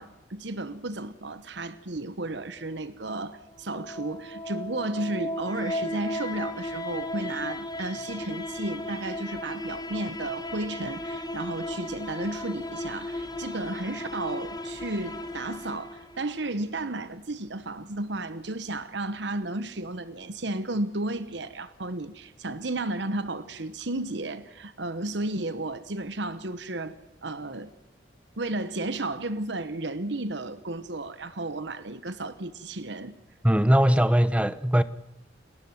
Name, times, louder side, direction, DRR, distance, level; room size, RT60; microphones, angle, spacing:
voice 1, 0.0-26.9 27.2-27.8 28.4-33.1, right 2 dB, 70° right, 1.1 m, -33 dB
sound 1, 3.5-16.5, left 1 dB, 25° left, 2.6 m, -35 dB
voice 2, 33.4-34.8, equal, 5° right, 0.8 m, -20 dB
29.0 x 13.0 x 9.5 m
head